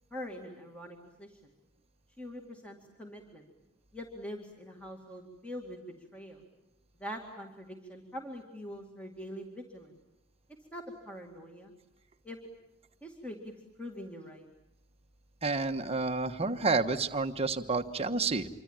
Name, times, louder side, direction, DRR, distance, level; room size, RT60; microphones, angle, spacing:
voice 1, 0.1-1.5 2.2-3.4 3.9-6.4 7.0-10.0 10.7-11.7 12.2-12.5 13.0-13.5 13.8-14.5, equal, 5° left, 2 dB, 2.2 m, -44 dB
voice 2, 15.4-18.5, right 3 dB, 30° right, 6 dB, 1.2 m, -30 dB
26.0 x 24.5 x 8.9 m, 0.88 s
head